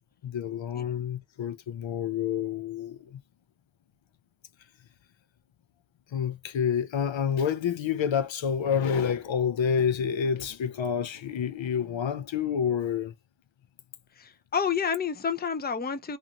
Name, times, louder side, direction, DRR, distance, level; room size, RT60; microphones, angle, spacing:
voice 1, 0.2-3.2 6.1-13.1, left 7 dB, 70° left, 0.6 m, -28 dB
voice 2, 14.2-16.2, left 6 dB, 20° left, 0.5 m, -29 dB
2.6 x 2.4 x 2.8 m
wide cardioid pair, 60°, 47 cm